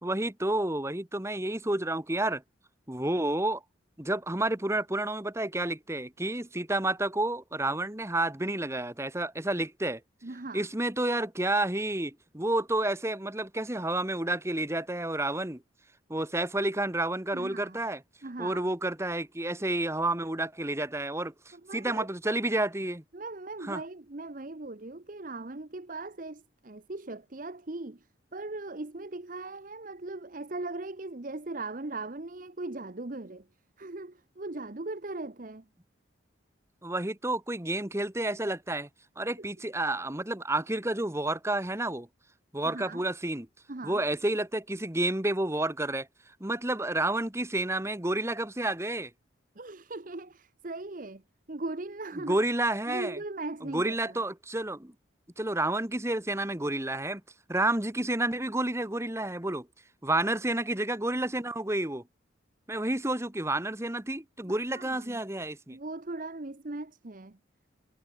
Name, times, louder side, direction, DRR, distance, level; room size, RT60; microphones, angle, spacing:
voice 1, 0.0-2.4 2.9-3.6 4.0-10.0 10.5-15.6 16.1-18.0 18.4-23.0 23.6-23.8 36.8-38.9 39.2-42.1 42.5-43.5 43.8-46.1 46.4-49.1 52.3-53.2 53.6-54.9 55.4-57.2 57.5-59.7 60.0-62.0 62.7-65.8, right 1 dB, 15° right, 1.4 m, -30 dB
voice 2, 10.2-10.7 17.3-17.8 18.2-18.7 21.5-22.1 23.1-33.5 33.8-35.7 39.4-39.5 42.6-43.0 43.7-44.0 49.5-51.2 51.5-52.4 52.9-54.2 64.4-65.2 65.7-67.4, right 2 dB, 40° right, 0.9 m, -39 dB
head